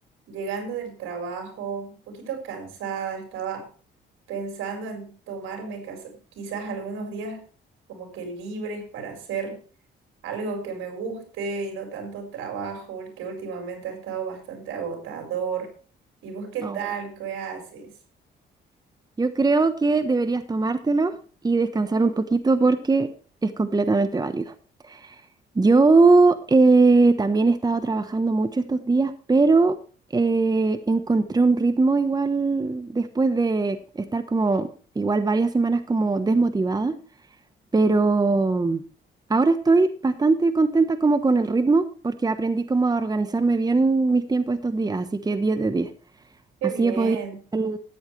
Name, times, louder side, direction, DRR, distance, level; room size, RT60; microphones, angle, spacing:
voice 1, 0.3-3.7 4.3-7.5 7.9-9.6 10.2-15.7 16.2-17.9 46.6-47.4, right 5 dB, 90° right, 4 dB, 4.9 m, -33 dB
voice 2, 19.2-21.1 21.4-23.1 23.4-24.5 24.9-25.0 25.5-29.8 30.1-34.7 35.0-36.9 37.7-38.8 39.3-45.9 46.8-47.2 47.5-47.8, right 3 dB, 20° right, 10 dB, 1.1 m, -21 dB
14.0 x 10.0 x 3.3 m, 0.38 s
cardioid pair, 90°, 20 cm